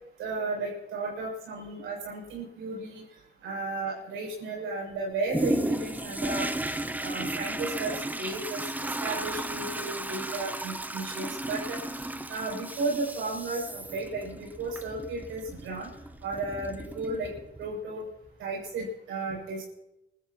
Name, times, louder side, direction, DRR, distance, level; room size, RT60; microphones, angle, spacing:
voice 1, 0.2-3.0 3.4-6.5 7.0-11.8 12.3-15.9 16.2-17.3 17.6-18.0 18.4-19.6, right 3 dB, 85° right, -3 dB, 7.4 m, -34 dB
Toilet flush, 5.3-17.7 18.3-18.4, right 1 dB, 10° right, 0.8 m, -34 dB
30.0 x 13.5 x 3.0 m, 0.93 s
cardioid pair, 90°, 20 cm